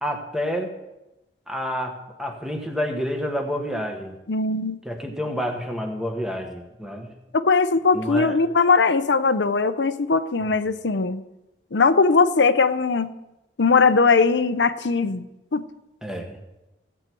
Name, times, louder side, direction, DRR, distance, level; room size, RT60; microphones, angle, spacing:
voice 1, 0.0-0.7 1.5-4.1 4.8-7.1 7.9-8.3 16.0-16.4, equal, 5° right, 2 dB, 1.5 m, -29 dB
voice 2, 4.3-4.8 7.3-11.2 11.7-13.1 13.6-15.2 15.5-15.7, left 4 dB, 90° left, 11 dB, 0.7 m, -20 dB
16.5 x 8.3 x 4.6 m, 0.97 s
head